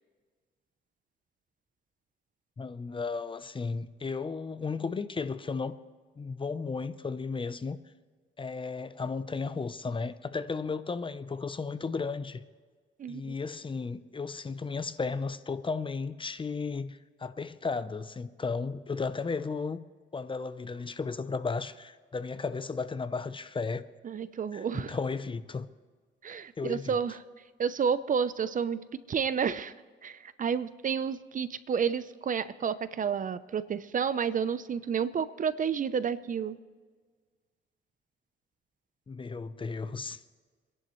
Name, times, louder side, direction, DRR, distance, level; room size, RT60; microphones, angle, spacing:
voice 1, 2.6-5.8 6.2-7.8 8.4-12.4 13.1-19.8 20.1-23.8 24.5-25.7 26.6-27.0 39.1-40.2, left 4 dB, 25° left, 0.6 m, -34 dB
voice 2, 24.0-25.0 26.2-27.2 27.6-28.8 29.1-29.7 30.0-36.6, right 7 dB, 40° right, 0.6 m, -30 dB
26.5 x 11.0 x 3.1 m
cardioid pair, 90°, 20 cm